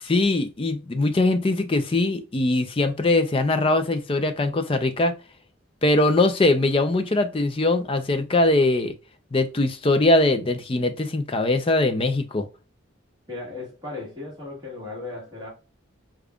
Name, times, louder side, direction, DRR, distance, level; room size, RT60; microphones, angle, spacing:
voice 1, 0.0-5.1 5.8-8.9 9.3-12.5, left 2 dB, 25° left, 0.4 m, -21 dB
voice 2, 13.3-15.5, left 3 dB, 20° right, 1.5 m, -36 dB
5.0 x 2.3 x 2.3 m
head